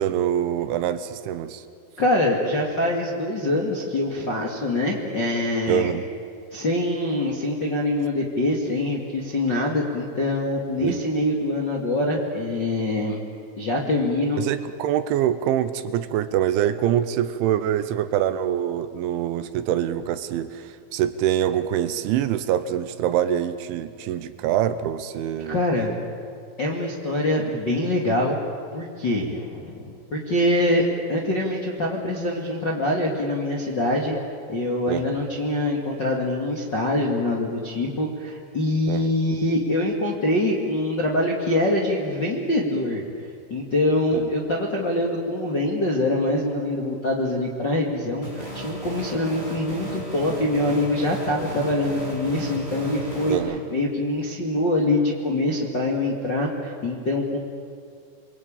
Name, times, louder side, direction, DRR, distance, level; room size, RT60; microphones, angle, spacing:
voice 1, 0.0-1.6 5.7-6.0 10.8-11.0 14.4-25.6 34.9-35.1 38.9-39.1 44.1-44.3 53.3-53.6, right 10 dB, 80° right, 11 dB, 3.1 m, -25 dB
voice 2, 2.0-5.9 6.5-13.2 13.6-14.4 25.5-25.9 26.6-28.4 28.7-34.2 34.5-43.0 43.5-57.4, left 1 dB, 40° left, -1 dB, 1.6 m, -24 dB
sound 1, 48.2-53.4, right 1 dB, 10° left, 7.2 m, -33 dB
28.5 x 23.0 x 8.8 m, 2.3 s
omnidirectional pair, 5.7 m